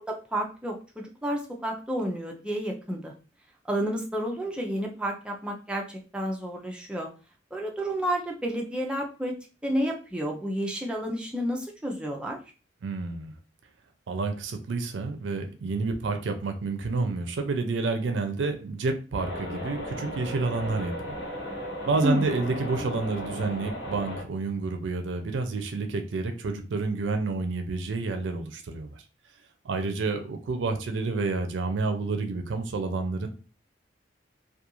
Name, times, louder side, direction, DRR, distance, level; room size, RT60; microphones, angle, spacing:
voice 1, 0.1-3.1 3.7-7.1 7.5-9.4 9.6-12.4 22.0-22.3, equal, 5° right, 0 dB, 0.4 m, -30 dB
voice 2, 12.8-13.3 14.1-21.2 21.9-29.0 29.6-33.3, right 3 dB, 85° right, 7 dB, 0.4 m, -29 dB
sound 1, 19.1-24.2, equal, 65° left, 1.2 m, -36 dB
2.4 x 2.2 x 2.9 m, 0.34 s
head